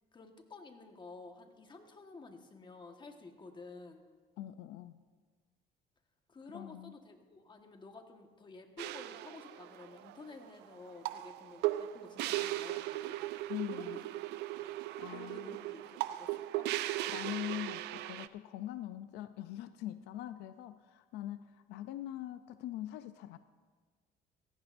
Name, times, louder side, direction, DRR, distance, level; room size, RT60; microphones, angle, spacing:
voice 1, 0.1-4.0 6.3-13.2 13.7-14.0 14.3-14.7 15.1-16.7, left 3 dB, 25° left, 5 dB, 1.4 m, -52 dB
voice 2, 4.4-5.0 6.5-7.0 13.5-14.0 15.0-15.6 17.1-23.4, left 12 dB, 90° left, 12 dB, 0.5 m, -42 dB
sound 1, 8.8-18.3, right 15 dB, 85° right, 0.5 m, -38 dB
17.0 x 15.0 x 2.6 m, 1.5 s
cardioid pair, 110°, 17 cm